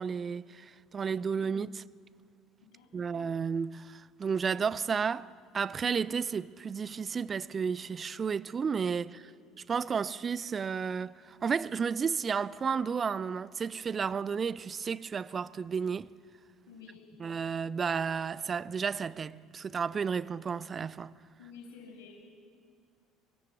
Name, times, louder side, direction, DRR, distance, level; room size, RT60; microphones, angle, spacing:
voice 1, 0.0-1.8 2.9-9.3 9.7-16.1 17.2-21.1, right 6 dB, 30° right, 0.5 m, -32 dB
voice 2, 2.6-3.4 9.0-9.3 16.7-17.0 21.4-22.3, left 5 dB, 60° left, 6.4 m, -52 dB
23.5 x 19.5 x 7.4 m
figure-of-eight pair, 60°, 0 cm